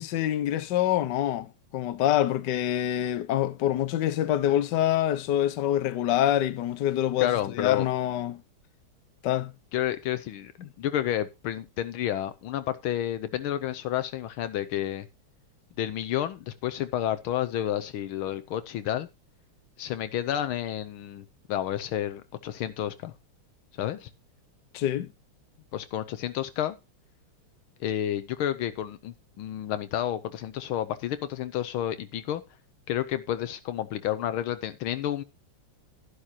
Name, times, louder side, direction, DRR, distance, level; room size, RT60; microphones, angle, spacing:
voice 1, 0.0-1.5 1.7-8.4 9.2-9.5 24.7-25.1, left 12 dB, 60° left, 1.3 m, -26 dB
voice 2, 7.2-7.9 9.7-10.5 10.8-15.1 15.8-19.1 19.8-23.1 23.8-24.1 25.7-26.8 27.8-32.4 32.9-35.2, left 11 dB, 75° left, 1.5 m, -30 dB
11.5 x 11.5 x 2.8 m
omnidirectional pair, 2.4 m